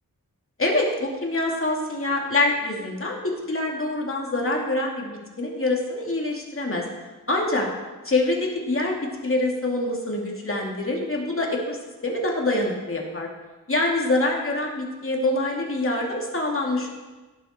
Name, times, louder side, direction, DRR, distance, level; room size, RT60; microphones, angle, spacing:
voice 1, 0.6-6.8 7.3-7.7 8.0-9.0 9.2-11.8 12.0-13.3 13.7-16.9, left 2 dB, 35° left, -1 dB, 2.6 m, -25 dB
17.5 x 7.3 x 4.4 m, 1.2 s
wide cardioid pair, 105°, 35 cm